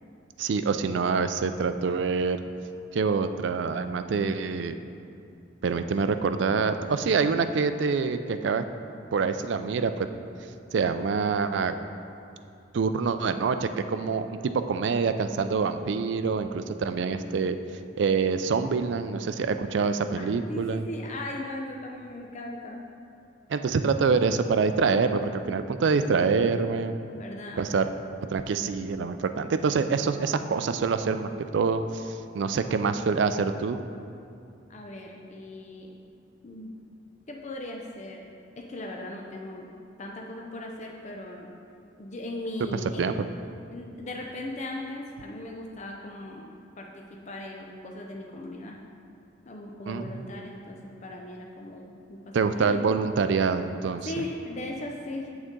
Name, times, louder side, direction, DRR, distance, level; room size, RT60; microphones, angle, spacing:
voice 1, 0.4-2.4 2.9-4.7 5.6-8.6 9.1-10.1 10.7-11.8 12.7-17.6 18.0-20.8 23.5-27.0 27.6-27.9 28.3-33.8 42.7-43.1 49.9-50.3 52.3-54.1, right 5 dB, 65° right, 10 dB, 0.4 m, -26 dB
voice 2, 20.2-22.8 27.1-27.7 34.7-35.9 36.4-36.7 37.3-38.3 38.6-39.7 40.0-41.5 42.0-43.2 43.7-48.8 49.5-52.2 52.6-52.9 54.0-55.3, left 1 dB, 40° left, 0 dB, 0.5 m, -38 dB
8.0 x 6.3 x 3.7 m, 2.5 s
head